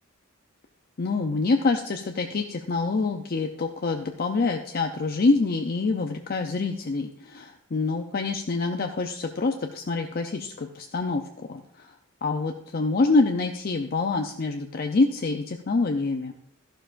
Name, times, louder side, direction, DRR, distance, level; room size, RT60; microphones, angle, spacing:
voice 1, 1.0-11.9 12.2-16.3, left 3 dB, 45° left, 5 dB, 0.5 m, -26 dB
13.5 x 11.5 x 2.5 m, 0.77 s
head